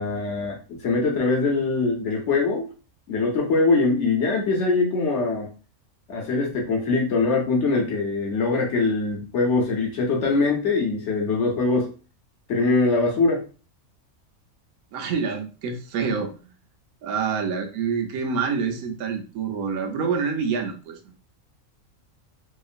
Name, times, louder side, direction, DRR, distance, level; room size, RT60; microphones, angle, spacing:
voice 1, 0.0-2.7 3.1-5.5 6.1-11.9 12.5-13.4, left 3 dB, 60° left, 0 dB, 0.9 m, -22 dB
voice 2, 14.9-16.5 17.0-21.1, right 5 dB, 85° right, 5 dB, 1.1 m, -27 dB
2.9 x 2.4 x 2.4 m, 0.36 s
omnidirectional pair, 1.5 m